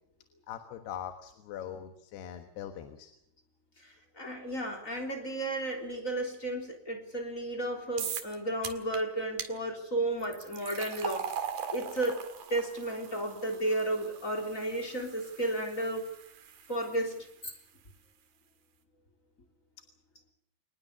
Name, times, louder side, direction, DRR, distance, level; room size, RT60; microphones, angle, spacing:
voice 1, 0.5-3.1, left 9 dB, 85° left, 7 dB, 3.5 m, -41 dB
voice 2, 3.8-11.4 11.7-12.2 12.5-16.1 16.7-17.5, right 1 dB, 20° left, 5 dB, 3.5 m, -33 dB
sound 1, 8.0-8.3 8.6-9.0 9.4-9.5 10.2-17.3, right 8 dB, 60° right, 3.4 m, -41 dB
25.5 x 20.0 x 7.0 m, 0.76 s
omnidirectional pair, 4.6 m